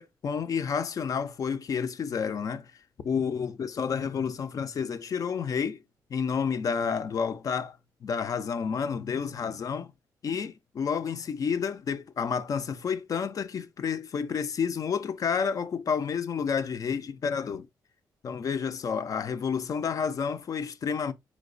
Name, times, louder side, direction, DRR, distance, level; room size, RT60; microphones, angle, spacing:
voice 1, 0.0-2.7 3.0-5.8 6.1-7.8 8.0-9.9 10.2-17.7 18.2-21.1, left 6 dB, 50° left, 0.4 m, -30 dB
4.5 x 2.0 x 2.4 m
cardioid pair, 80°, 8 cm